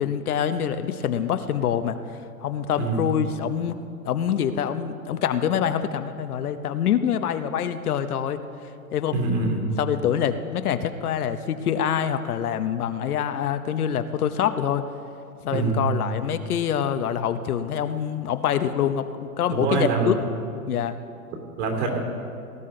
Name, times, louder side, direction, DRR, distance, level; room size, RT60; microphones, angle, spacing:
voice 1, 0.0-2.0 2.4-3.8 4.0-8.4 8.9-9.3 9.8-14.8 15.4-19.1 19.4-20.2 20.7-21.0, left 9 dB, 75° left, 10 dB, 0.9 m, -25 dB
voice 2, 9.1-9.7 15.5-15.8 19.5-20.1 21.6-22.0, right 4 dB, 50° right, 1 dB, 3.1 m, -24 dB
18.5 x 12.0 x 3.8 m, 2.4 s
hypercardioid pair, 155°, 45 cm